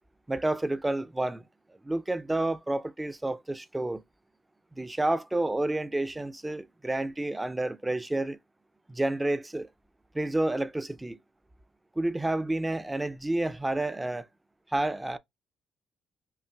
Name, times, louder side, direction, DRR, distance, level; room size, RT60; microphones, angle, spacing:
voice 1, 0.3-1.4 1.8-4.0 4.8-8.4 8.9-9.7 10.1-11.2 12.0-14.3 14.7-15.2, right 2 dB, 15° right, 0.4 m, -29 dB
5.5 x 2.5 x 2.2 m
cardioid pair, 90°, 0 cm